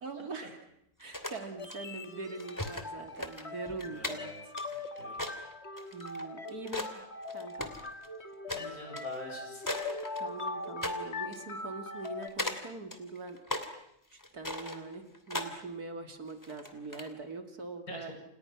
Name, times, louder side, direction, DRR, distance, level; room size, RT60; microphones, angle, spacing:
voice 1, 0.0-0.6 1.0-4.3 5.9-7.0 7.3-7.7 10.2-13.4 13.8-13.9 14.1-18.1, right 3 dB, 60° right, 6 dB, 3.0 m, -42 dB
sound 1, 1.0-1.8 2.4-2.9 3.1-7.0 7.2-8.1 8.5-8.7 9.0-9.2 9.6-10.5 10.8-11.0 11.3-11.4 12.0-12.6 12.9-13.7 14.1-15.5 16.3-17.1, left 1 dB, 10° left, 2.8 m, -38 dB
sound 2, 1.6-12.3, left 3 dB, 40° left, 2.5 m, -41 dB
voice 2, 3.8-4.4 4.7-5.3 8.5-9.6 17.9-18.1, left 1 dB, 55° left, 2 dB, 8.6 m, -46 dB
29.5 x 28.5 x 6.1 m, 0.77 s
omnidirectional pair, 1.8 m